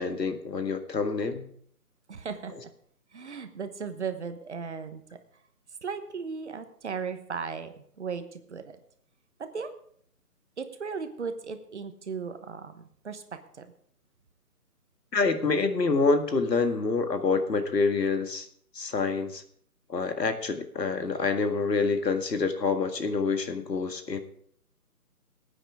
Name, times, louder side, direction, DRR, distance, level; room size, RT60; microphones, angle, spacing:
voice 1, 0.0-1.5 15.1-18.5 18.7-19.4 19.9-24.2, left 4 dB, 85° left, 7 dB, 1.8 m, -27 dB
voice 2, 2.1-2.5 3.1-5.0 5.8-8.8 9.4-9.7 10.6-13.7, right 5 dB, 45° right, 9 dB, 1.2 m, -36 dB
19.0 x 9.0 x 3.6 m, 0.63 s
hypercardioid pair, 165°, 48 cm